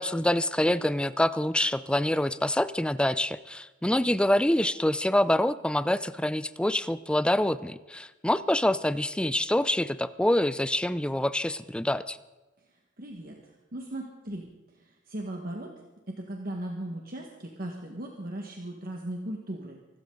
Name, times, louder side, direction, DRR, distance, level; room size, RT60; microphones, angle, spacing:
voice 1, 0.0-12.2, left 1 dB, 5° left, 15 dB, 0.5 m, -26 dB
voice 2, 13.0-14.4 14.8-15.7 16.1-19.8, right 1 dB, 50° right, 1 dB, 1.7 m, -37 dB
24.5 x 13.5 x 4.0 m, 1.2 s
head